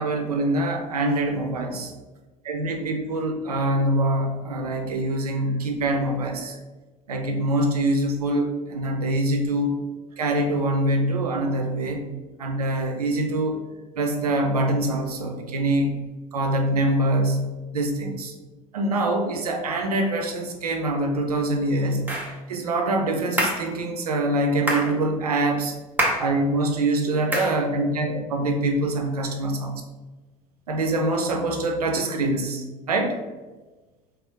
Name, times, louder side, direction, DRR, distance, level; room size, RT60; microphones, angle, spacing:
voice 1, 0.0-1.9 2.4-6.5 7.1-9.8 10.2-12.1 12.4-13.6 14.0-16.0 16.3-18.3 18.7-22.1 22.5-25.7 26.2-29.7 30.7-33.2, right 1 dB, 85° right, 4 dB, 0.7 m, -24 dB
sound 1, 22.1-22.3 23.4-23.7 24.7-24.9 26.0-26.3 27.3-27.6, right 1 dB, 10° right, 1.5 m, -24 dB
3.5 x 3.2 x 4.7 m, 1.2 s
hypercardioid pair, 70°, 19 cm